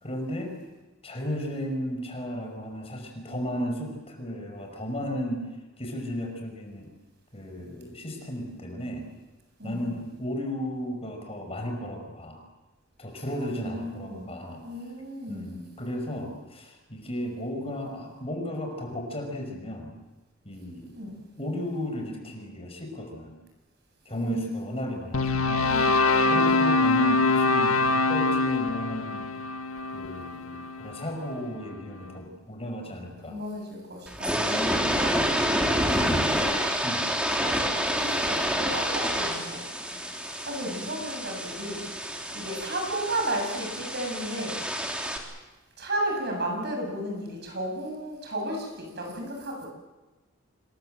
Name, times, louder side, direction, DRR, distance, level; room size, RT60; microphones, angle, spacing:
voice 1, 0.0-0.5 1.0-5.5 5.8-6.9 7.3-9.1 9.6-12.4 13.0-14.6 15.3-20.0 20.4-21.0 21.4-23.4 24.1-25.7 26.3-29.3 29.9-33.4 34.3-34.9 35.7-36.3 36.8-37.1, equal, 30° left, 3 dB, 5.7 m, -34 dB
voice 2, 13.5-14.3 14.6-15.5 20.9-21.2 24.1-24.8 25.6-26.5 33.2-35.4 36.3-36.4 37.4-39.6 39.9-40.0 40.4-41.8 42.3-44.6 45.8-49.7, right 1 dB, 50° right, 2 dB, 7.8 m, -34 dB
sound 1, 25.1-31.4, left 3 dB, 85° left, 1.8 m, -24 dB
sound 2, 34.1-45.2, equal, 5° right, 3.3 m, -28 dB
27.5 x 21.5 x 7.9 m, 1.1 s
head